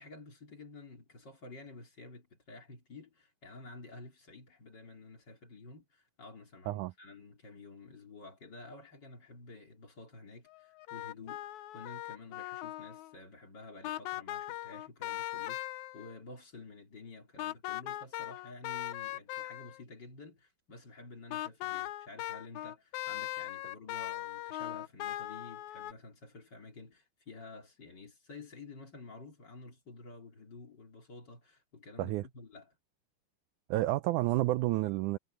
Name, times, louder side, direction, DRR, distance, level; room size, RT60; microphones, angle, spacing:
voice 1, 0.0-32.8, left 3 dB, 30° left, 3.8 m, -51 dB
sound 1, 10.5-13.1 13.8-16.2 17.4-19.8 21.3-25.9, left 15 dB, 75° left, 1.8 m, -39 dB
voice 2, 33.7-35.2, right 17 dB, 80° right, 1.8 m, -30 dB
omnidirectional pair, 4.0 m